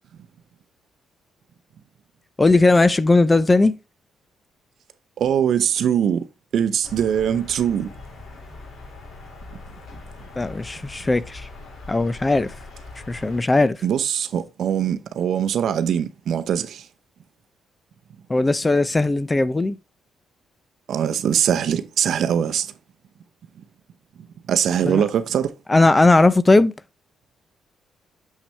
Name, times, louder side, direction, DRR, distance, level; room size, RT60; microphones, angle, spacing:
voice 1, 2.4-3.8 10.4-11.5 11.9-12.5 13.1-13.8 18.3-19.8 24.9-25.0 25.7-26.7, left 2 dB, 20° left, 0.5 m, -18 dB
voice 2, 5.2-6.2 6.5-7.9 13.8-16.8 20.9-22.7 24.5-25.5, right 9 dB, 65° right, 0.7 m, -22 dB
sound 1, 6.8-13.4, left 3 dB, 65° left, 4.0 m, -41 dB
6.6 x 6.0 x 3.2 m
cardioid pair, 90°, 0 cm